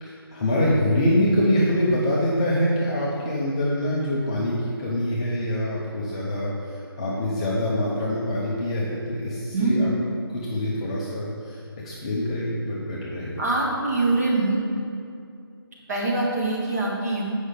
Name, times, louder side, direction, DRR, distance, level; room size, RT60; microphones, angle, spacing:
voice 1, 0.0-9.9 10.3-13.3, left 1 dB, 15° left, -7 dB, 0.6 m, -25 dB
voice 2, 9.5-9.9 13.4-14.6 15.9-17.2, right 2 dB, 40° right, -4 dB, 1.8 m, -23 dB
8.1 x 5.4 x 5.0 m, 2.5 s
figure-of-eight pair, 170°, 13 cm